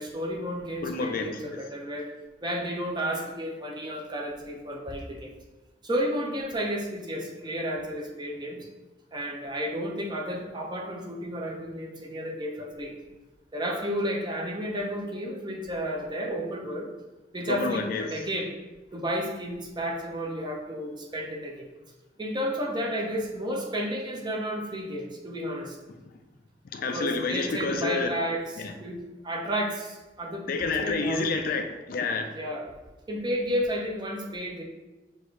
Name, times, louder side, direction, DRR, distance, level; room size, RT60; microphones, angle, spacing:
voice 1, 0.0-2.1 2.4-5.3 5.8-8.7 9.1-12.9 13.5-16.9 17.3-18.6 18.9-21.7 22.2-25.8 26.9-31.3 32.3-32.7 33.1-34.6, equal, 25° right, 1 dB, 0.6 m, -32 dB
voice 2, 0.8-1.3 17.5-18.1 26.7-28.1 30.5-32.3, left 4 dB, 55° left, 5 dB, 0.4 m, -29 dB
6.3 x 2.5 x 3.1 m, 1.1 s
head